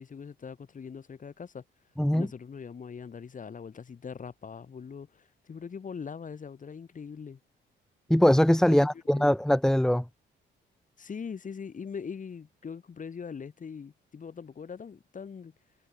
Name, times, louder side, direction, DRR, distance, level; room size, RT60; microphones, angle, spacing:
voice 1, 0.0-1.6 2.1-7.4 8.7-9.3 11.0-15.5, left 6 dB, 40° left, 3.3 m, -41 dB
voice 2, 8.1-10.0, equal, 5° left, 1.7 m, -22 dB
cardioid pair, 90°, 20 cm